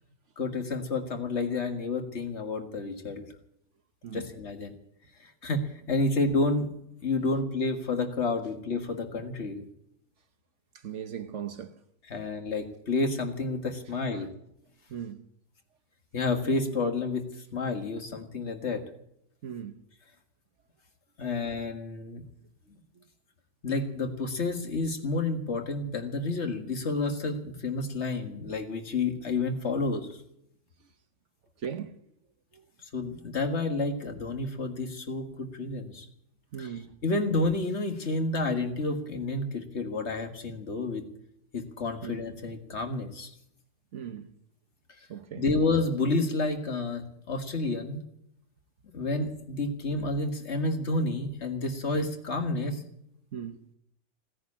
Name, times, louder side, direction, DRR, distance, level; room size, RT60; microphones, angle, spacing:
voice 1, 0.4-3.3 4.1-4.7 5.4-6.7 7.0-9.6 12.1-14.3 16.1-17.3 17.5-18.8 21.2-22.2 23.6-30.2 32.8-36.1 36.6-36.7 37.0-41.0 41.5-43.3 45.4-48.0 48.9-52.8, left 3 dB, 45° left, 2.0 m, -30 dB
voice 2, 10.7-11.8 12.2-12.3 14.1-14.3 14.9-15.3 19.4-19.8 23.0-23.1 31.6-31.9 32.5-32.6 36.5-37.0 42.0-42.2 43.9-44.3 45.1-45.4 53.3-53.7, right 8 dB, 55° right, 1.1 m, -38 dB
17.0 x 10.0 x 8.6 m
omnidirectional pair, 1.7 m